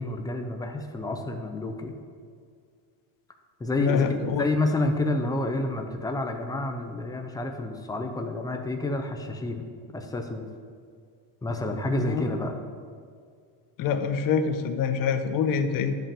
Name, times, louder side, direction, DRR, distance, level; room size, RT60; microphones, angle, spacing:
voice 1, 0.0-1.9 3.6-4.0 4.4-9.7 9.9-10.5 11.4-12.6, left 2 dB, 10° left, 4 dB, 0.4 m, -29 dB
voice 2, 3.8-4.5 12.0-12.3 13.8-16.0, left 6 dB, 45° left, 8 dB, 0.8 m, -26 dB
11.0 x 5.4 x 7.4 m, 2.1 s
cardioid pair, 175°, 48 cm